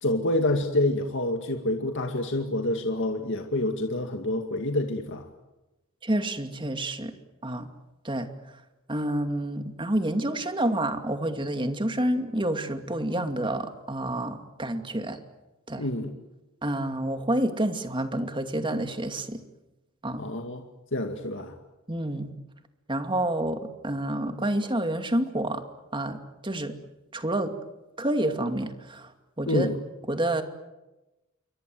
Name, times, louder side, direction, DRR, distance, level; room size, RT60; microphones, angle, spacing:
voice 1, 0.0-5.2 15.8-16.1 20.2-20.6 20.9-21.5 29.5-29.8, left 1 dB, 60° left, 4 dB, 2.2 m, -27 dB
voice 2, 6.0-7.1 7.4-7.7 8.0-8.3 8.9-15.2 15.7-15.8 16.6-19.4 20.0-20.3 21.9-22.3 22.9-25.6 25.9-26.7 27.1-27.5 28.0-29.1 29.4-29.7 30.1-30.4, right 1 dB, 25° right, 7 dB, 2.4 m, -28 dB
28.0 x 23.5 x 7.9 m, 1.0 s
head